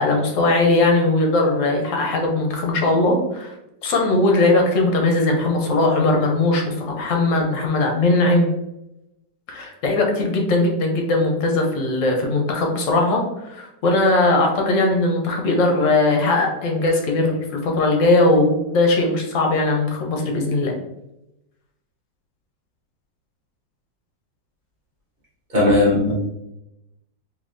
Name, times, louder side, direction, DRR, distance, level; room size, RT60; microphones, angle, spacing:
voice 1, 0.0-3.5 3.8-8.5 9.5-20.7, left 2 dB, 60° left, 1 dB, 0.9 m, -19 dB
voice 2, 25.5-26.1, left 2 dB, 35° right, -6 dB, 0.9 m, -16 dB
3.8 x 2.9 x 2.5 m, 0.88 s
omnidirectional pair, 1.9 m